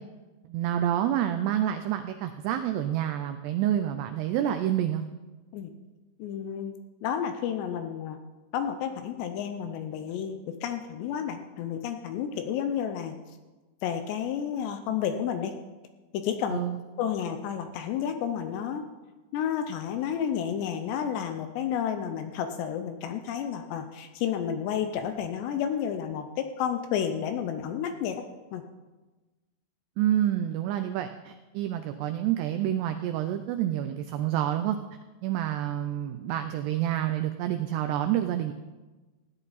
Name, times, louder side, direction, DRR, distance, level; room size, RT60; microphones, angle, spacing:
voice 1, 0.5-5.0 16.5-16.8 30.0-34.8 35.2-38.5, right 11 dB, 85° right, 7 dB, 2.4 m, -28 dB
voice 2, 6.2-6.7 7.0-8.2 8.5-13.2 13.8-15.5 16.1-16.6 17.0-18.8 19.3-28.2 28.5-28.6, left 8 dB, 80° left, 7 dB, 2.6 m, -31 dB
16.5 x 11.0 x 4.1 m, 1.2 s
omnidirectional pair, 5.4 m